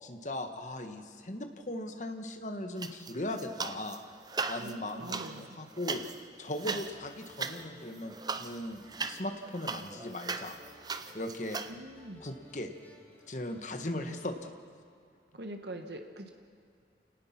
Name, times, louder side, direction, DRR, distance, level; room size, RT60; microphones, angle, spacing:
voice 1, 0.0-4.0 4.5-6.0 6.4-8.8 9.1-10.5 11.1-11.6 12.2-12.7 13.3-14.5, left 1 dB, 45° left, 6 dB, 1.6 m, -38 dB
sound 1, 2.8-4.0 4.3-11.7, right 4 dB, 25° right, 0.6 m, -39 dB
voice 2, 4.6-5.6 6.6-6.8 11.7-12.2 15.3-16.3, right 1 dB, 75° right, 5 dB, 1.5 m, -43 dB
sound 2, 6.6-14.2, equal, 10° left, 3.2 m, -58 dB
28.5 x 18.5 x 6.0 m, 2.3 s
head